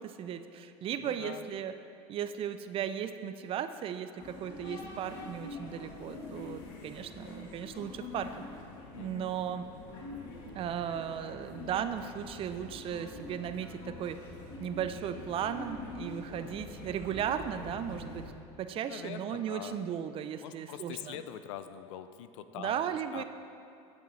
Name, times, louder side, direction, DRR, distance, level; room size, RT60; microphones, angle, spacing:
voice 1, 0.0-1.7 2.1-8.3 8.9-9.7 10.5-14.2 14.6-18.3 18.6-21.2 22.6-23.2, right 9 dB, 35° right, 10 dB, 0.4 m, -36 dB
voice 2, 1.0-1.5 8.9-9.3 18.7-19.8 20.4-22.8 23.1-23.2, left 11 dB, 85° left, 11 dB, 0.4 m, -43 dB
sound 1, 4.2-18.3, left 3 dB, 65° left, 1.3 m, -45 dB
9.2 x 6.1 x 3.2 m, 2.5 s
supercardioid pair, 110°, 15 cm